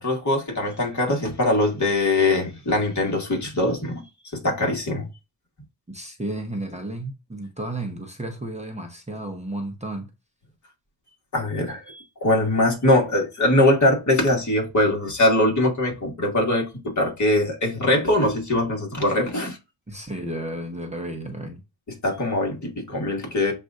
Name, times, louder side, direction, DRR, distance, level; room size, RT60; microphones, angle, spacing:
voice 1, 0.0-4.0 4.3-5.1 11.3-16.6 17.0-19.6 21.9-23.5, left 1 dB, 40° left, 1.8 m, -22 dB
voice 2, 5.9-10.1 19.9-21.6, right 1 dB, 15° right, 0.8 m, -32 dB
7.3 x 2.6 x 2.5 m
cardioid pair, 85°, 42 cm